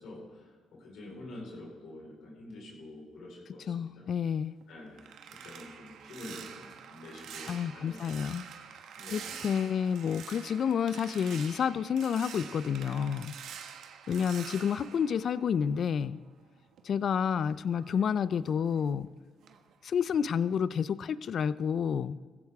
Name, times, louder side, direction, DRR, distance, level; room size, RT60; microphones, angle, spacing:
voice 1, 0.0-4.1 4.7-5.0 5.3-8.1 8.9-9.5, left 1 dB, 75° left, -2 dB, 4.4 m, -47 dB
voice 2, 3.7-4.5 7.5-8.4 9.1-13.4 14.1-16.2 16.8-19.1 19.8-22.2, left 7 dB, 60° left, 17 dB, 0.5 m, -29 dB
sound 1, 4.4-16.1 16.4-19.1 19.4-19.7 20.1-20.4, right 8 dB, 75° right, 1.1 m, -47 dB
15.5 x 15.0 x 3.6 m, 1.4 s
cardioid pair, 90°, 0 cm